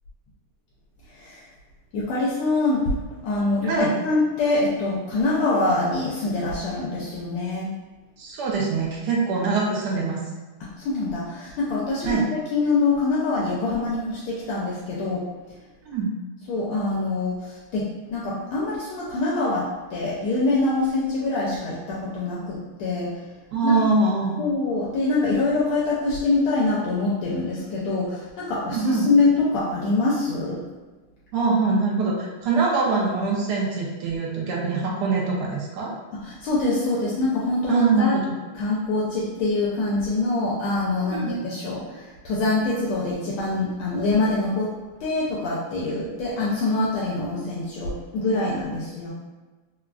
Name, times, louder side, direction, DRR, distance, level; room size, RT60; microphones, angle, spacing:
voice 1, 1.9-2.9 3.2-3.7 4.0-7.7 10.6-15.3 16.5-23.1 23.6-23.8 24.4-30.6 36.1-38.2 38.5-44.7 45.0-49.1, left 2 dB, 80° left, -6 dB, 1.4 m, -24 dB
voice 2, 8.2-10.2 12.0-12.2 15.8-16.1 23.5-24.4 28.6-29.1 31.3-35.9 37.7-38.3 41.1-41.4, right 4 dB, 80° right, -3 dB, 0.9 m, -23 dB
3.8 x 2.2 x 2.3 m, 1.3 s
omnidirectional pair, 2.3 m